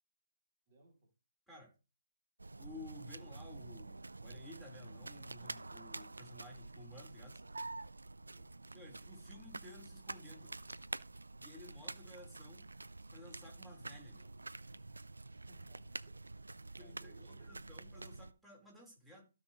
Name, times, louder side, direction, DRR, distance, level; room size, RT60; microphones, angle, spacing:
voice 1, 0.7-1.1 8.3-8.5 12.0-12.3 15.3-16.2 16.5-17.6, right 2 dB, 40° right, 0 dB, 3.0 m, -65 dB
sound 1, 2.4-18.3, right 2 dB, 90° right, 0.5 m, -48 dB
voice 2, 2.6-7.4 8.7-10.5 11.4-12.6 13.1-14.3 16.8-19.2, left 2 dB, 5° right, -3 dB, 4.2 m, -55 dB
15.0 x 5.9 x 3.1 m, 0.30 s
figure-of-eight pair, 145°, 0 cm